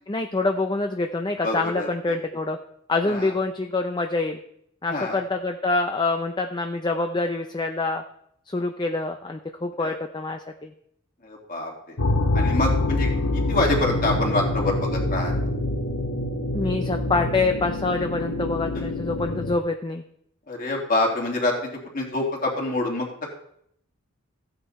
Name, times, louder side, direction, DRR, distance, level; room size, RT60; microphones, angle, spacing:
voice 1, 0.1-2.6 2.9-4.4 4.8-8.0 8.5-10.7 16.5-20.0, left 3 dB, 20° left, 5 dB, 0.5 m, -26 dB
voice 2, 1.4-1.9 3.1-3.3 4.9-5.2 9.8-9.9 11.2-12.0 12.3-13.1 13.3-15.3 20.5-23.3, left 2 dB, 40° left, -1 dB, 2.9 m, -26 dB
sound 1, 12.0-19.6, left 2 dB, 70° left, 1.1 m, -25 dB
15.0 x 8.8 x 4.2 m, 0.71 s
head